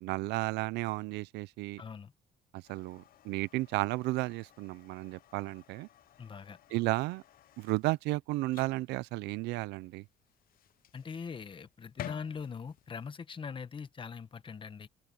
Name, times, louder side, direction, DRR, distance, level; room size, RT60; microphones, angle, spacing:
voice 1, 0.0-1.8 2.5-5.9 6.7-7.2 7.6-10.0, right 20 dB, 90° right, 0.6 m, -33 dB
voice 2, 1.8-2.1 6.2-6.6 10.9-14.9, left 6 dB, 30° left, 1.3 m, -42 dB
sound 1, 2.6-13.0, left 12 dB, 60° left, 0.8 m, -53 dB
cardioid pair, 110°, 17 cm